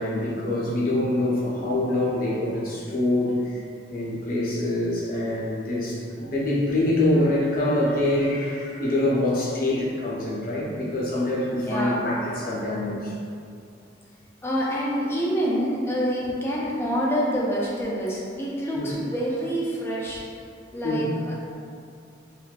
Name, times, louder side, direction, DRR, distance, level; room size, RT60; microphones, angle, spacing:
voice 1, 0.0-13.2 18.7-18.9 20.8-21.1, left 1 dB, 50° left, -6 dB, 0.7 m, -25 dB
voice 2, 11.7-12.0 14.4-20.2 20.7-21.3, equal, 15° left, -5 dB, 0.4 m, -26 dB
3.2 x 2.6 x 2.4 m, 2.4 s
head